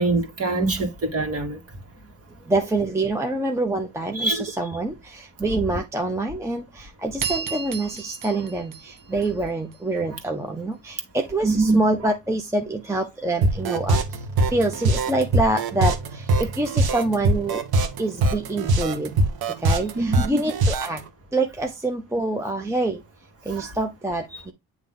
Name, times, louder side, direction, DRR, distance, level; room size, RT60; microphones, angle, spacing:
voice 1, 0.0-1.6 4.1-4.7 5.4-5.5 8.3-8.5 9.1-9.3 10.1-10.2 11.4-12.1 16.4-16.5 19.9-20.5 23.5-23.7 24.3-24.4, right 2 dB, 40° right, 1.9 m, -25 dB
voice 2, 2.5-17.6 18.0-19.2 19.6-21.0 21.3-23.0 23.4-24.5, right 2 dB, 10° right, 0.7 m, -26 dB
sound 1, 7.2-9.8, right 6 dB, 55° right, 1.1 m, -33 dB
sound 2, 13.4-21.0, right 2 dB, 75° right, 1.4 m, -22 dB
9.3 x 3.1 x 3.8 m
cardioid pair, 145°, 37 cm